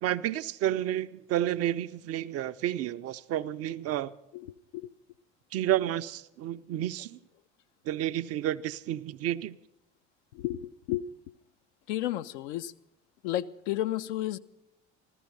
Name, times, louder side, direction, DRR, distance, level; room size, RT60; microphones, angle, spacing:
voice 1, 0.0-4.1 5.5-7.2 7.9-9.6, right 12 dB, 40° right, 0.5 m, -30 dB
voice 2, 10.3-11.1 11.9-12.7 13.2-14.4, left 13 dB, 65° left, 0.6 m, -32 dB
14.5 x 14.0 x 5.3 m
figure-of-eight pair, 60°, 37 cm